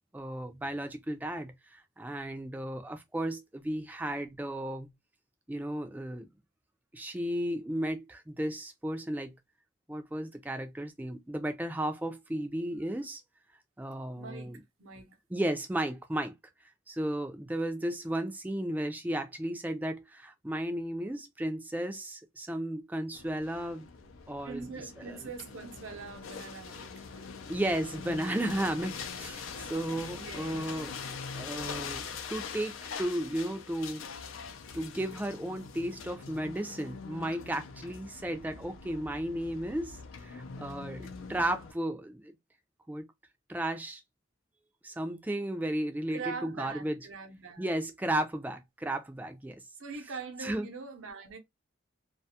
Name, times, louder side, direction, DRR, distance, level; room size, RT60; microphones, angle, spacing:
voice 1, 0.1-4.9 5.5-6.3 6.9-9.3 9.9-13.2 13.8-14.6 15.3-16.4 16.9-23.9 24.3-24.7 25.0-25.2 27.5-30.9 31.3-32.0 32.3-34.3 34.7-42.3 42.9-43.1 43.5-44.0 44.8-47.1 47.6-49.6 50.4-50.7, right 1 dB, 10° right, 0.3 m, -34 dB
voice 2, 14.2-15.2 24.4-27.2 30.1-30.7 46.1-47.7 49.8-51.4, right 5 dB, 85° right, 0.7 m, -43 dB
sound 1, 23.1-41.7, left 5 dB, 90° left, 0.5 m, -43 dB
2.4 x 2.3 x 2.7 m
head